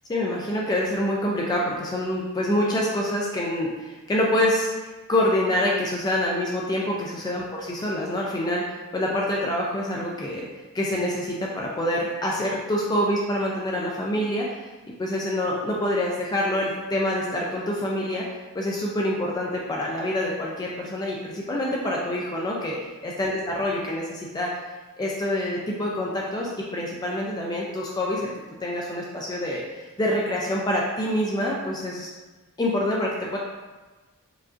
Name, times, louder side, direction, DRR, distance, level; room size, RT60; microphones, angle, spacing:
voice 1, 0.1-8.6 8.9-10.5 10.7-14.7 15.0-18.2 18.5-22.8 23.0-24.5 25.0-28.3 28.6-32.1 32.6-33.4, left 1 dB, 20° left, -3 dB, 0.3 m, -26 dB
4.7 x 2.5 x 2.5 m, 1.2 s
head